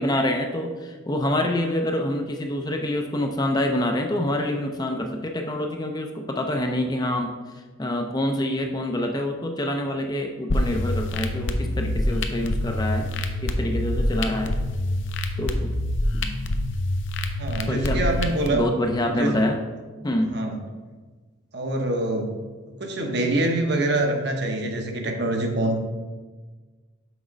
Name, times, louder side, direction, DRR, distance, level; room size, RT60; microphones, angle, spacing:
voice 1, 0.0-7.3 7.8-13.1 13.4-14.5 15.4-15.7 16.1-16.2 17.7-18.1 18.5-19.6 20.0-20.4, left 1 dB, 20° left, 3 dB, 0.5 m, -26 dB
sound 1, 10.5-18.5, left 1 dB, 65° left, 0.6 m, -26 dB
voice 2, 17.4-18.6 19.0-19.5 20.2-20.6 21.5-22.4 22.7-25.8, right 2 dB, 55° right, 3 dB, 0.9 m, -25 dB
6.1 x 4.2 x 5.1 m, 1.3 s
head